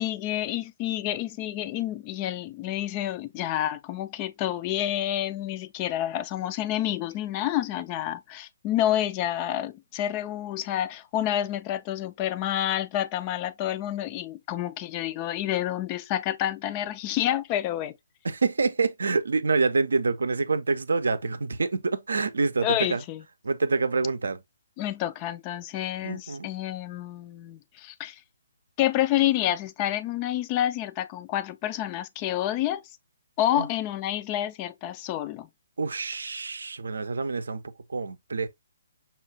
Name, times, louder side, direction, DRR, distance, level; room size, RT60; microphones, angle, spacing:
voice 1, 0.0-17.9 22.6-23.2 24.8-28.2 28.8-32.8 33.4-35.5, left 12 dB, 25° left, 0.3 m, -29 dB
voice 2, 18.2-23.0 23.4-24.4 26.0-26.5 33.6-33.7 35.8-37.6 37.9-38.5, right 4 dB, 65° right, 0.5 m, -26 dB
5.5 x 2.4 x 2.7 m
figure-of-eight pair, 135°, 0 cm